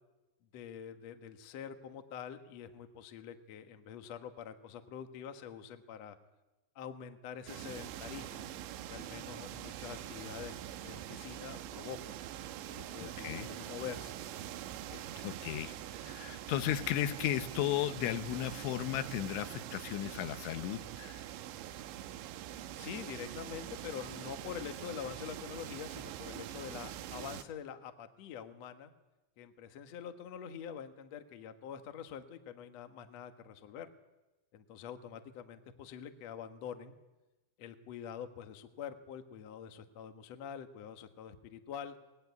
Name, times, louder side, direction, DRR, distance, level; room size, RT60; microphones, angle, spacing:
voice 1, 0.5-6.2 6.7-8.5 8.9-12.2 12.7-14.1 14.9-15.0 22.7-28.9 29.4-33.9 34.5-36.9 37.6-42.0, left 8 dB, 70° left, 7 dB, 1.5 m, -45 dB
sound 1, 7.5-27.4, right 12 dB, 80° right, 3.3 m, -44 dB
voice 2, 13.0-13.5 15.2-21.3, left 12 dB, 85° left, 10 dB, 3.5 m, -35 dB
22.5 x 19.0 x 9.5 m, 1.1 s
omnidirectional pair, 5.3 m